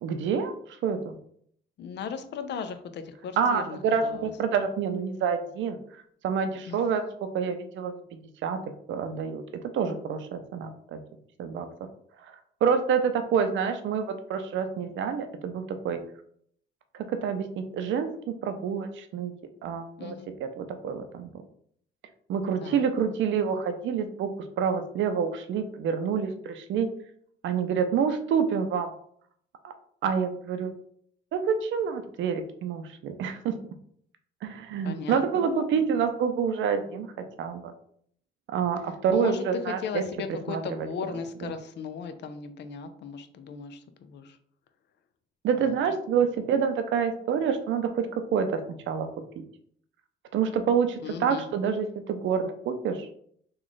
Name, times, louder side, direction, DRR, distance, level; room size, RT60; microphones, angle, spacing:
voice 1, 0.0-0.5 0.8-1.2 3.4-5.8 6.2-7.1 7.3-7.9 8.4-8.6 8.9-9.4 9.7-11.0 11.4-11.7 12.6-16.0 17.1-19.3 19.6-20.1 20.6-21.3 22.3-24.3 24.6-26.9 27.4-28.9 29.6-29.7 30.0-30.7 31.3-33.5 34.4-37.1 37.4-37.7 38.5-40.0 40.5-40.9 41.4-41.5 45.4-48.1 48.3-48.5 48.9-49.1 50.3-53.2, right 6 dB, 75° right, 8 dB, 0.6 m, -27 dB
voice 2, 1.8-4.3 6.7-6.9 20.0-20.3 22.6-22.9 34.8-35.8 39.1-44.4 45.6-45.8 51.0-51.4, left 6 dB, 60° left, 9 dB, 0.5 m, -37 dB
3.1 x 2.4 x 3.9 m, 0.64 s
cardioid pair, 90°, 20 cm